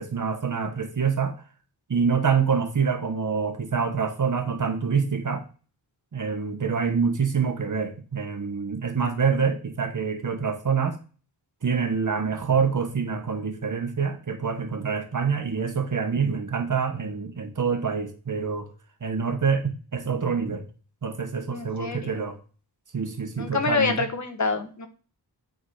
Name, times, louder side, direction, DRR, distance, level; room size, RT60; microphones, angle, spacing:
voice 1, 0.0-1.4 1.9-5.4 6.1-11.0 11.6-18.7 19.0-20.6 21.0-22.4 22.9-24.0, right 6 dB, 45° right, 1.3 m, -26 dB
voice 2, 21.5-22.3 23.4-24.9, left 4 dB, 40° left, 1.4 m, -27 dB
9.5 x 4.0 x 5.6 m
wide cardioid pair, 140°, 42 cm